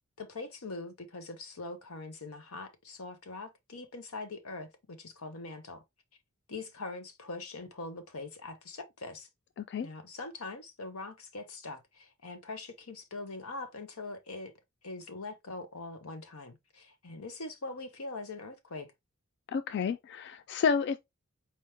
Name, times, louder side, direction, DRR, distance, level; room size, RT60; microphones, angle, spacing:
voice 1, 0.2-5.8 6.5-9.3 9.8-14.5 14.8-18.9, left 3 dB, 90° left, 1.0 m, -42 dB
voice 2, 9.6-9.9 19.5-21.0, left 5 dB, 55° left, 0.3 m, -30 dB
4.5 x 3.0 x 3.4 m
head